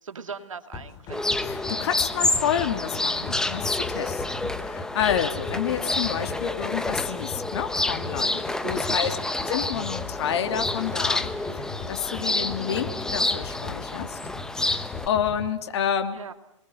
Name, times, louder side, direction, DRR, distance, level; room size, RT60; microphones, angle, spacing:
voice 1, 0.0-1.3 8.9-9.4 16.1-16.3, right 6 dB, 80° right, 9 dB, 2.3 m, -40 dB
sound 1, 0.7-15.5, left 5 dB, 25° left, 3.0 m, -39 dB
sound 2, 1.1-15.1, left 2 dB, 5° left, 1.1 m, -29 dB
voice 2, 1.4-9.2 9.5-11.3 11.5-14.2 14.5-16.2, left 9 dB, 55° left, 6 dB, 3.1 m, -29 dB
29.0 x 21.5 x 8.1 m, 0.84 s
hypercardioid pair, 130°, 17 cm